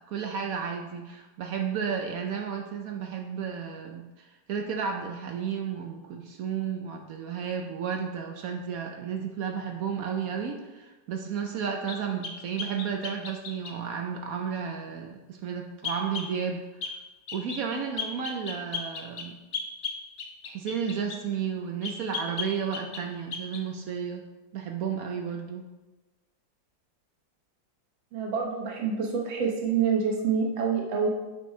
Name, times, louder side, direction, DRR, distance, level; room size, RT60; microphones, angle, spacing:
voice 1, 0.0-16.9 17.3-19.4 20.4-24.3 24.5-25.7, right 7 dB, 65° right, 3 dB, 0.9 m, -33 dB
sound 1, 11.9-13.8 15.8-16.3 16.8-17.0 17.3-17.6 18.0-21.2 21.8-23.1 23.3-23.6, left 5 dB, 75° left, 0.5 m, -36 dB
voice 2, 28.1-31.1, right 6 dB, 85° right, -1 dB, 1.8 m, -27 dB
8.1 x 6.1 x 3.2 m, 1.1 s
omnidirectional pair, 2.0 m